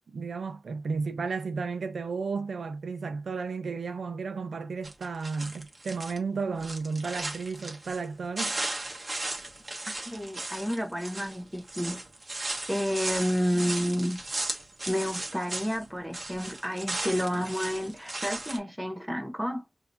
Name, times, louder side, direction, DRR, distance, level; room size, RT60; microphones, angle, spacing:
voice 1, 0.1-8.5, right 4 dB, 85° right, 0.6 m, -33 dB
sound 1, 4.8-6.2 6.6-8.1 8.4-15.8 16.1-18.6, right 2 dB, 30° right, 1.2 m, -36 dB
voice 2, 10.1-12.0 12.7-14.2 14.9-19.6, equal, ahead, 0.8 m, -30 dB
4.8 x 2.7 x 2.6 m
wide cardioid pair, 125°, 0 cm